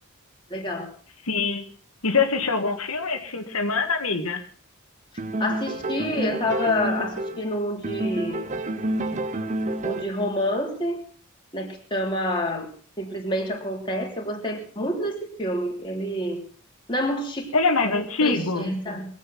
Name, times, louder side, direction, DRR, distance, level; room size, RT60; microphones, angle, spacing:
voice 1, 0.5-0.9 5.4-8.5 9.8-11.0 11.5-12.7 13.0-16.4 16.9-17.5 17.8-19.1, left 1 dB, 20° left, 0 dB, 3.2 m, -28 dB
voice 2, 1.3-1.6 2.0-4.4 17.5-18.7, left 4 dB, 80° left, 4 dB, 1.7 m, -24 dB
sound 1, 5.2-7.5 7.8-10.3, right 1 dB, 35° right, 0.9 m, -29 dB
22.0 x 8.4 x 5.8 m, 0.44 s
head